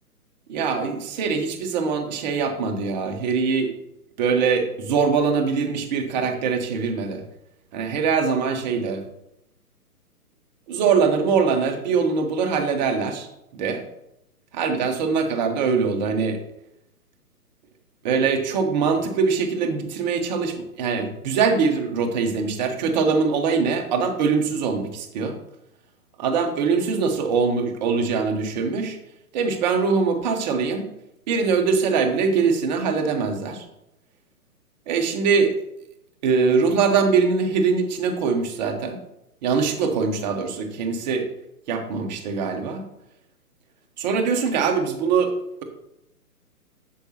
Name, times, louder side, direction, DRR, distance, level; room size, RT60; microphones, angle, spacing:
voice 1, 0.5-3.7 4.2-7.2 7.7-9.0 10.7-13.3 13.5-13.8 14.5-16.4 18.0-25.3 26.2-29.0 29.3-30.8 31.3-33.6 34.9-35.5 36.2-39.0 39.4-41.3 41.7-42.8 44.0-45.3, right 5 dB, 30° right, 4 dB, 1.0 m, -22 dB
8.1 x 7.4 x 2.9 m, 0.84 s
figure-of-eight pair, 130°, 46 cm